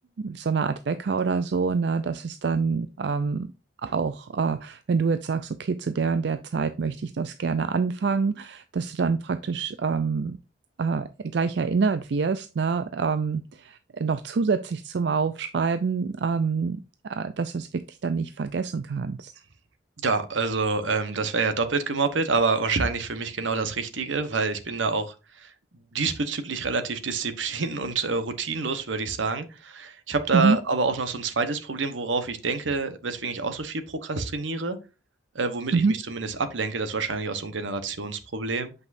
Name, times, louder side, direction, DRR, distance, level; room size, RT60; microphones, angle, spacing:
voice 1, 0.2-3.5 3.8-10.4 10.8-16.8 17.1-19.3 30.3-30.6 35.7-35.9, right 5 dB, 65° right, 0.4 m, -26 dB
voice 2, 20.0-25.5 25.9-34.8 35.3-38.7, right 4 dB, 85° right, 1.1 m, -27 dB
8.2 x 5.3 x 2.6 m
head